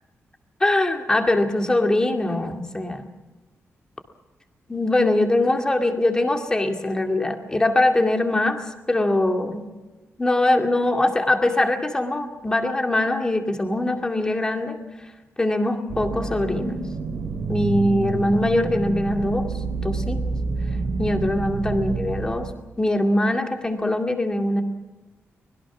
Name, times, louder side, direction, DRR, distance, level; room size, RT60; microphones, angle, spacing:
voice 1, 0.6-3.0 4.7-9.7 10.2-14.8 15.4-16.9 17.5-19.5 19.8-20.4 21.0-22.5 22.8-24.6, left 1 dB, 15° left, 4 dB, 2.3 m, -22 dB
sound 1, 15.9-22.5, right 4 dB, 60° right, 2.9 m, -28 dB
24.5 x 21.5 x 6.2 m, 1.2 s
wide cardioid pair, 180°, 5 cm